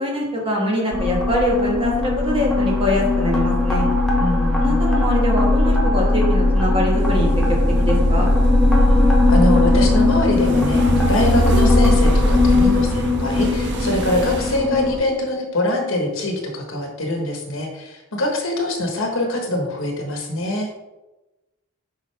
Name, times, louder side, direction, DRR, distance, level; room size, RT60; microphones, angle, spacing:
voice 1, 0.0-3.9 4.6-7.4 7.8-8.3, left 1 dB, 25° right, -2 dB, 1.5 m, -23 dB
sound 1, 0.9-14.9, left 2 dB, ahead, 1.1 m, -18 dB
voice 2, 4.2-4.8 9.3-20.7, left 1 dB, 65° left, 2 dB, 1.4 m, -23 dB
sound 2, 7.0-14.6, right 2 dB, 50° right, 0.7 m, -27 dB
7.5 x 5.5 x 3.4 m, 1.0 s
head